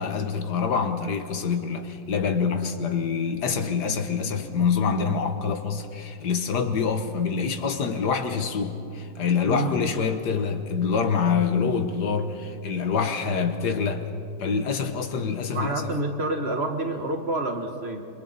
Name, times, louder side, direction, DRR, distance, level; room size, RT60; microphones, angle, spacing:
voice 1, 0.0-14.0 14.4-15.9, left 5 dB, 90° left, 1.8 m, -26 dB
voice 2, 9.4-9.8 15.5-18.0, right 2 dB, 40° right, 1.6 m, -28 dB
28.0 x 24.0 x 4.2 m
omnidirectional pair, 1.7 m